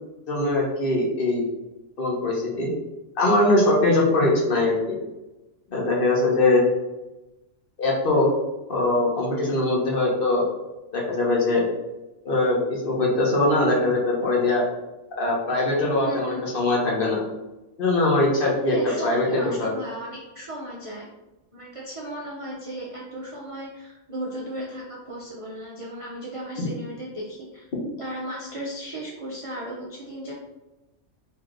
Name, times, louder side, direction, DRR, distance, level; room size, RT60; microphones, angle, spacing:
voice 1, 0.3-1.4 2.0-2.7 3.2-5.0 5.7-6.6 7.8-8.3 8.7-10.4 10.9-11.6 12.2-14.6 15.2-17.2 17.8-19.2 19.6-19.7 26.6-26.7, left 2 dB, 50° left, -2 dB, 1.0 m, -22 dB
voice 2, 16.0-16.4 18.7-21.1 21.5-27.7 28.0-30.3, right 1 dB, 40° right, -4 dB, 0.4 m, -35 dB
4.6 x 2.8 x 2.5 m, 1.0 s
omnidirectional pair, 1.3 m